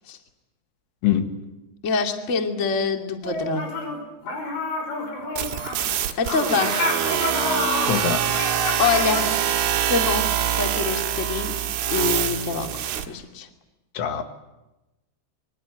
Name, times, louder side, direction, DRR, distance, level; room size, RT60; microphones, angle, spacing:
voice 1, 1.0-1.4 7.9-8.3 13.9-14.2, left 9 dB, 90° left, 6 dB, 4.5 m, -23 dB
voice 2, 1.8-3.6 6.2-6.8 7.6-7.9 8.8-9.3 9.9-11.5 11.9-13.5, left 5 dB, 30° left, 4 dB, 1.5 m, -25 dB
sound 1, 3.2-4.0 4.3-9.2, left 2 dB, 65° left, 8.3 m, -28 dB
sound 2, 5.4-13.1, right 10 dB, 80° right, 4.3 m, -24 dB
26.5 x 24.0 x 9.4 m, 1.0 s
omnidirectional pair, 5.5 m